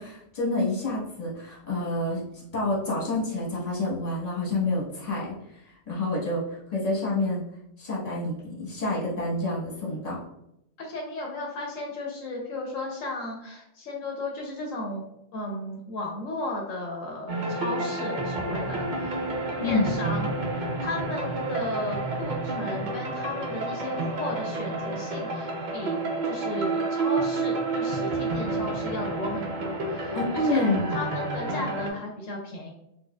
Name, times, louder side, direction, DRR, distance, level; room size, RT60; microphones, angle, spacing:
voice 1, 0.0-5.3 5.9-7.4 7.8-10.2 19.6-19.9 30.0-31.1, left 2 dB, 30° left, -5 dB, 1.2 m, -28 dB
voice 2, 10.8-15.1 15.3-19.3 19.6-20.3 20.6-32.7, left 2 dB, 75° left, 0 dB, 1.0 m, -35 dB
sound 1, 17.3-31.9, right 2 dB, 80° right, 0.4 m, -30 dB
4.2 x 2.5 x 2.2 m, 0.79 s
omnidirectional pair, 1.4 m